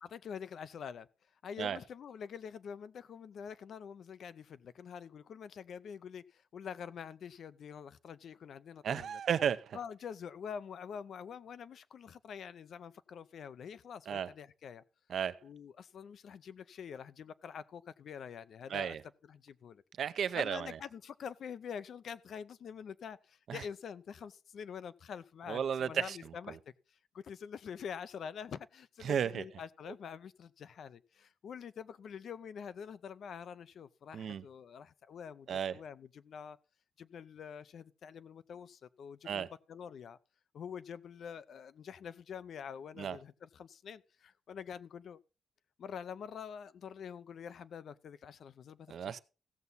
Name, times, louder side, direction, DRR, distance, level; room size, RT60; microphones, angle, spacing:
voice 1, 0.0-1.1 1.4-9.2 9.7-14.8 15.4-18.9 19.3-19.8 20.3-26.6 26.9-36.6 37.0-40.2 40.5-45.2 45.8-49.2, left 7 dB, 60° left, 0.5 m, -46 dB
voice 2, 8.8-9.8 14.1-14.3 15.1-15.4 18.7-19.0 20.0-20.7 23.5-23.6 25.5-26.2 26.5-26.6 29.0-29.4 29.9-30.0 34.1-34.4 35.5-35.8 39.3-39.5 43.0-43.2 48.9-49.2, right 8 dB, 60° right, 0.6 m, -34 dB
15.5 x 7.0 x 4.0 m
cardioid pair, 135°, 0 cm